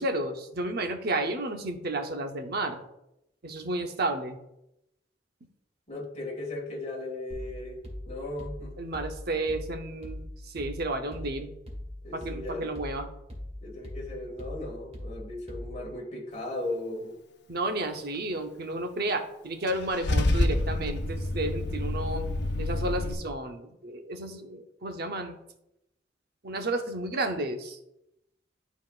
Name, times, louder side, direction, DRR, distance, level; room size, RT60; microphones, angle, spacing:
voice 1, 0.0-2.8 3.4-4.4 8.8-11.5 12.1-13.1 17.5-22.3 22.6-25.4 26.4-27.8, right 2 dB, 60° right, 5 dB, 0.8 m, -32 dB
voice 2, 5.9-8.7 12.0-12.7 13.6-17.2, left 2 dB, 40° left, -1 dB, 2.0 m, -37 dB
sound 1, 7.3-16.0, left 1 dB, 35° right, 1.6 m, -41 dB
Car / Engine starting / Idling, 19.7-23.1, left 1 dB, 65° left, 0.7 m, -28 dB
11.5 x 4.1 x 2.5 m, 0.84 s
head